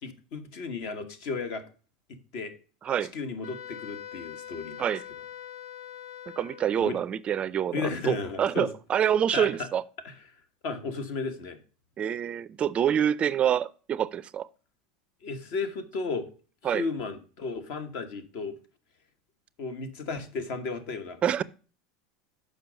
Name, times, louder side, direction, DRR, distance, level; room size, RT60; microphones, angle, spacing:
voice 1, 0.0-1.6 2.3-2.6 3.1-4.8 6.8-7.0 7.7-8.7 9.3-9.7 10.0-10.1 10.6-11.6 15.2-16.3 16.6-18.5 19.6-21.4, left 4 dB, 60° left, 1.3 m, -34 dB
Wind instrument woodwind instrument, 3.4-6.9, left 10 dB, 75° left, 0.7 m, -43 dB
voice 2, 6.3-9.8 12.0-14.5 16.6-16.8 21.2-21.4, right 9 dB, 30° right, 0.4 m, -27 dB
6.9 x 5.1 x 5.1 m
supercardioid pair, 110°, 4 cm